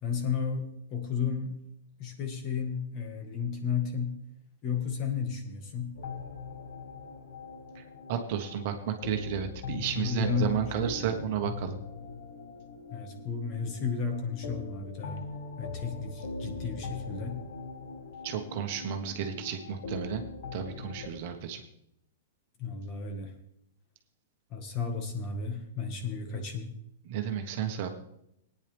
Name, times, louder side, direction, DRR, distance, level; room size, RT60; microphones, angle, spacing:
voice 1, 0.0-1.6 2.0-4.2 4.6-5.9 10.0-11.2 12.9-15.2 15.6-17.4 22.6-23.3 24.5-26.7, left 6 dB, 30° left, 5 dB, 1.7 m, -33 dB
sound 1, 5.9-21.1, left 4 dB, 60° left, 1.6 m, -41 dB
voice 2, 7.7-11.8 18.2-20.2 20.5-21.6 27.0-27.9, right 8 dB, 40° right, 4 dB, 1.3 m, -32 dB
18.5 x 9.7 x 3.5 m, 0.77 s
supercardioid pair, 170°, 0 cm